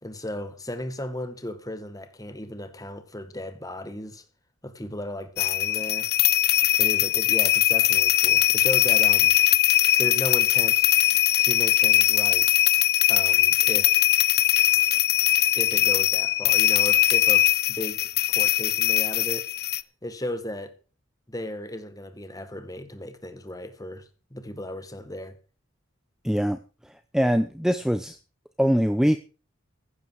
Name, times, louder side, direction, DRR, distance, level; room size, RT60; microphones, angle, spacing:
voice 1, 0.0-4.2 4.6-6.1 6.8-9.4 10.0-10.9 11.4-12.5 13.1-14.0 15.5-19.5 20.0-20.7 21.3-25.4, left 1 dB, 20° left, 1.9 m, -35 dB
sound 1, 5.4-19.8, left 15 dB, 50° left, 0.6 m, -21 dB
voice 2, 26.2-26.6 27.1-28.2 28.6-29.2, equal, 5° right, 0.7 m, -22 dB
15.5 x 12.0 x 4.7 m
head